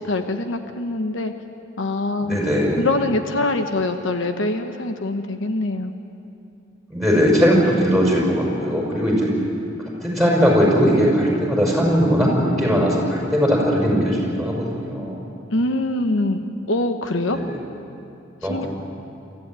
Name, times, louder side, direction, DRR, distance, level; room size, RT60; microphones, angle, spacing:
voice 1, 0.0-1.3 1.8-2.4 2.7-5.9 15.5-17.4 18.5-18.7, left 2 dB, 70° left, 6 dB, 1.1 m, -24 dB
voice 2, 2.2-2.8 6.9-9.3 10.0-15.1 17.3-17.6 18.4-18.7, equal, ahead, -3 dB, 5.8 m, -19 dB
24.0 x 15.0 x 9.1 m, 2.8 s
head